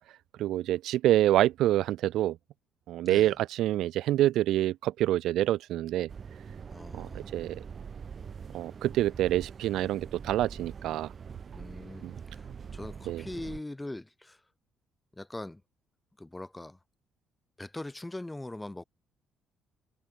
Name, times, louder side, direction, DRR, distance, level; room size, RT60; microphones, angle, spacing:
voice 1, 0.4-2.4 2.9-6.1 6.9-7.6 8.5-11.1 12.0-12.1 13.1-13.2, right 13 dB, 80° right, 0.6 m, -27 dB
voice 2, 3.0-3.4 6.7-7.3 11.5-14.4 15.1-15.6 16.2-16.8 17.6-18.8, left 1 dB, 10° left, 4.6 m, -41 dB
sound 1, 6.1-13.6, right 6 dB, 35° right, 1.7 m, -44 dB
cardioid pair, 140°, 0 cm